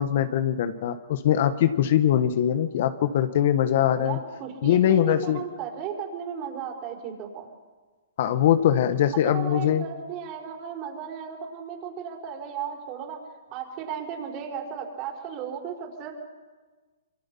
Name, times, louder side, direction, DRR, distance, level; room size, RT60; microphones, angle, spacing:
voice 1, 0.0-4.2 4.6-5.4 8.2-9.8, left 10 dB, 55° left, 10 dB, 1.5 m, -22 dB
voice 2, 4.0-7.5 9.1-13.2 13.5-16.1, right 7 dB, 35° right, 1 dB, 5.4 m, -35 dB
27.0 x 23.0 x 5.7 m, 1.3 s
hypercardioid pair, 140°, 0 cm